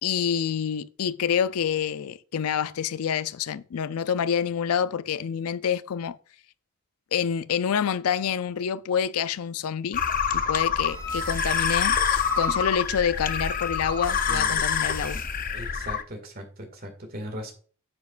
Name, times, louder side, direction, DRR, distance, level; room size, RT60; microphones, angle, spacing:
voice 1, 0.0-6.2 7.1-10.0 10.3-15.2, left 7 dB, 85° left, 0.4 m, -27 dB
sound 1, 9.9-16.0, left 7 dB, 35° left, 0.6 m, -26 dB
Wind instrument woodwind instrument, 10.8-15.1, left 1 dB, 15° left, 1.9 m, -35 dB
voice 2, 14.3-14.6 15.5-17.5, equal, 40° right, 2.0 m, -38 dB
9.3 x 7.2 x 2.4 m
head